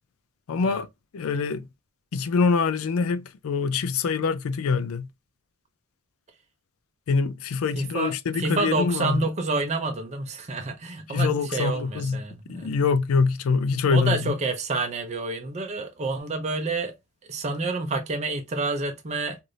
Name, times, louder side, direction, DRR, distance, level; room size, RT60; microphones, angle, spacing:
voice 1, 0.5-0.9 1.1-1.7 2.1-5.1 7.1-9.2 11.1-12.2 12.5-14.3, left 5 dB, 65° left, 0.4 m, -24 dB
voice 2, 7.8-12.7 13.9-16.9 17.3-19.4, right 3 dB, 30° right, 0.5 m, -28 dB
3.2 x 2.5 x 2.6 m
head